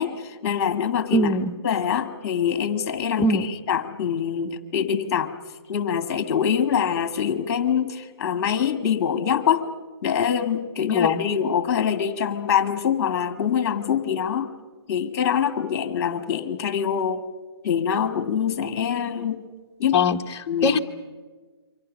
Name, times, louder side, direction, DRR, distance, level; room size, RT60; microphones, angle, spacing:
voice 1, 0.0-1.3 1.6-3.3 3.7-5.3 5.7-9.6 10.0-14.5 14.9-17.2 17.6-19.4 19.8-20.0 20.5-20.8, left 8 dB, 40° left, 10 dB, 1.8 m, -24 dB
voice 2, 1.1-1.6 3.2-3.5 10.9-11.2 19.9-20.8, left 2 dB, 20° left, 4 dB, 1.1 m, -21 dB
27.5 x 24.5 x 6.4 m, 1.4 s
hypercardioid pair, 145°, 14 cm